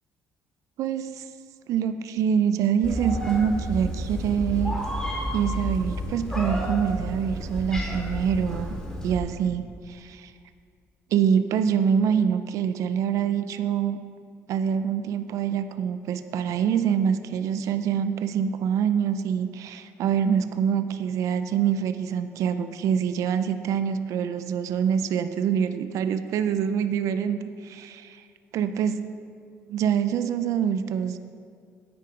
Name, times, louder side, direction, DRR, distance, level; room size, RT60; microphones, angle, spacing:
voice 1, 0.8-1.2 1.7-4.8 5.3-8.8 9.0-10.3 11.1-14.0 14.5-28.2 28.5-29.0 29.7-31.3, right 8 dB, 70° right, 11 dB, 0.5 m, -25 dB
Meow, 2.8-9.2, equal, 10° left, 2.1 m, -31 dB
9.7 x 8.6 x 5.0 m, 2.2 s
cardioid pair, 120°, 6 cm